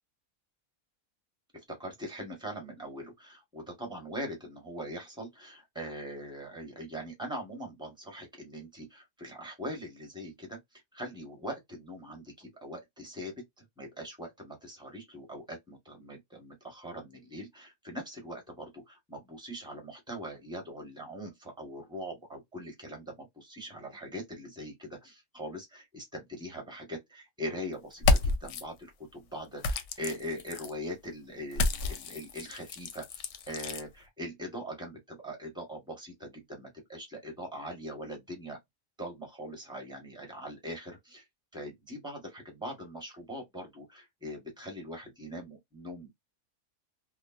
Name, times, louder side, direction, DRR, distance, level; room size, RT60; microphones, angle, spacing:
voice 1, 1.7-10.6 10.9-38.6 39.0-41.2 41.5-46.2, equal, 5° right, 1.0 m, -42 dB
sound 1, 27.9-28.6 29.6-30.7 31.5-33.8, left 3 dB, 65° left, 0.8 m, -30 dB
3.1 x 2.1 x 2.3 m
omnidirectional pair, 1.5 m